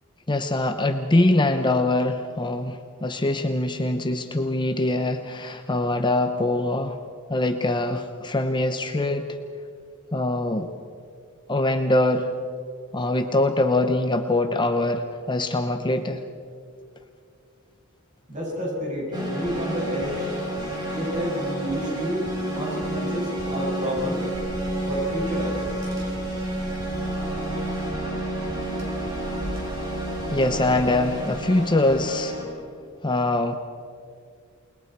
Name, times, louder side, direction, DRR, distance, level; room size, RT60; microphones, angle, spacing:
voice 1, 0.3-7.0 7.3-9.3 10.1-10.7 11.5-12.3 12.9-16.2 30.3-32.4 33.0-33.6, left 2 dB, 20° left, 7 dB, 0.8 m, -23 dB
voice 2, 18.3-20.3 20.9-22.3 22.5-24.3 24.9-25.7, equal, 40° right, -3 dB, 7.7 m, -30 dB
sound 1, 19.1-32.4, right 1 dB, 20° right, 6.2 m, -30 dB
Car / Engine, 24.3-31.0, equal, 60° right, 4.7 m, -39 dB
29.0 x 21.0 x 4.7 m, 2.3 s
head